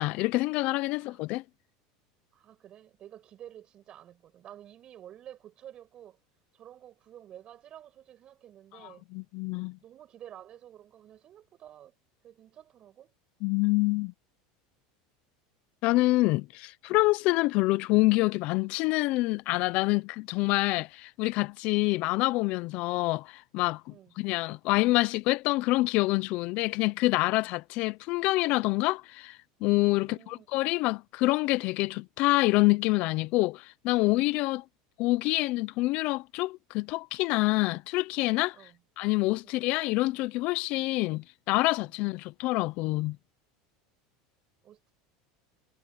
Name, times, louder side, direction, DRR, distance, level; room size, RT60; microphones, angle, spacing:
voice 1, 0.0-1.4 9.1-9.8 13.4-14.1 15.8-23.8 24.2-34.6 35.0-38.6 39.0-43.2, left 21 dB, 55° left, 0.7 m, -26 dB
voice 2, 0.9-1.3 2.3-6.2 6.5-9.0 9.8-11.9 12.2-13.1 23.9-24.2 30.0-30.5 38.5-38.8 39.4-39.6 41.8-42.0 44.6-44.9, right 11 dB, 35° right, 6.8 m, -51 dB
supercardioid pair, 140°, 3 cm